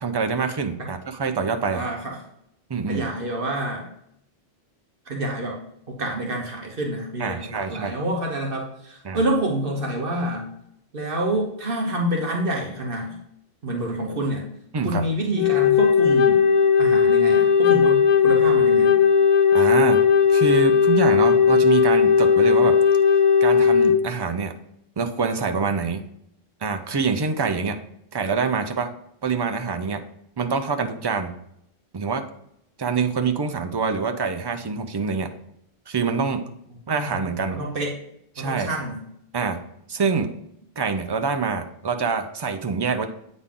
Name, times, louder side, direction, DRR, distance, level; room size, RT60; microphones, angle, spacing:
voice 1, 0.0-1.8 2.7-3.1 7.2-8.0 9.0-9.2 14.7-15.1 19.5-20.0 20.3-22.8 23.4-24.5 25.0-26.0 26.6-27.8 28.1-28.9 29.2-30.0 30.4-31.3 31.9-32.2 32.8-35.3 35.9-36.4 36.9-37.6 38.4-38.7 39.3-39.6 39.9-40.3 40.8-43.1, right 5 dB, 35° right, 7 dB, 0.4 m, -25 dB
voice 2, 1.7-2.2 2.9-3.9 5.1-5.6 5.9-10.5 10.9-13.2 13.6-14.4 14.8-16.4 16.8-19.0 37.0-37.2 37.5-38.0 38.4-39.0, right 1 dB, 60° right, 0 dB, 1.2 m, -27 dB
Wind instrument woodwind instrument, 15.4-24.0, left 6 dB, 50° left, 0.5 m, -17 dB
8.4 x 4.1 x 3.7 m, 0.76 s
omnidirectional pair, 1.1 m